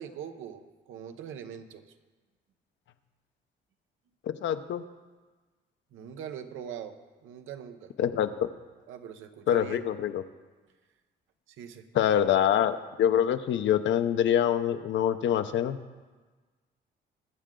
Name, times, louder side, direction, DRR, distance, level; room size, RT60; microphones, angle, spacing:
voice 1, 0.0-1.8 5.9-6.9 7.2-7.9 8.9-9.9 11.5-11.8 12.2-12.6, right 8 dB, 85° right, 8 dB, 0.9 m, -42 dB
voice 2, 4.3-4.8 8.0-8.3 9.5-10.2 11.9-15.8, left 10 dB, 70° left, 10 dB, 0.7 m, -25 dB
21.5 x 7.7 x 3.8 m, 1.3 s
cardioid pair, 90°, 20 cm